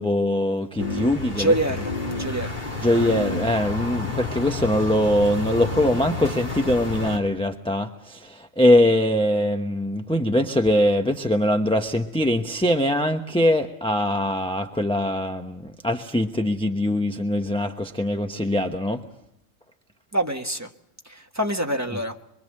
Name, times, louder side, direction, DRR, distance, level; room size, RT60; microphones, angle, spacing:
voice 1, 0.0-1.5 2.8-19.0, left 1 dB, 5° left, 4 dB, 0.9 m, -22 dB
sound 1, 0.8-7.2, left 2 dB, 35° left, 3.6 m, -30 dB
voice 2, 1.4-2.5 20.1-20.7 21.0-22.1, right 1 dB, 15° right, 3 dB, 1.5 m, -25 dB
24.5 x 24.0 x 7.7 m, 0.79 s
omnidirectional pair, 1.3 m